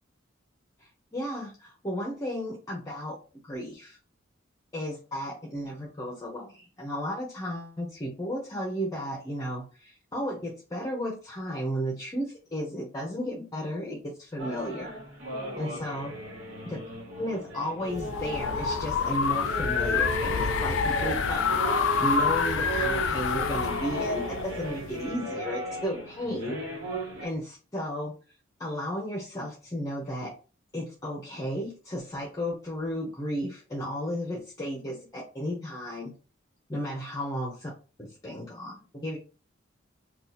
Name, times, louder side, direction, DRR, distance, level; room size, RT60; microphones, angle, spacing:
voice 1, 1.1-3.2 3.4-4.0 4.7-15.0 15.5-16.1 16.7-16.8 17.2-21.5 22.0-26.6 27.2-28.1 28.6-30.3 30.7-36.1 36.7-37.7 38.0-39.2, equal, 20° left, -2 dB, 0.7 m, -34 dB
sound 1, 14.4-27.3, right 2 dB, 85° right, 1.2 m, -36 dB
sound 2, 17.9-25.1, left 6 dB, 70° left, 0.4 m, -27 dB
2.7 x 2.4 x 3.9 m, 0.36 s
head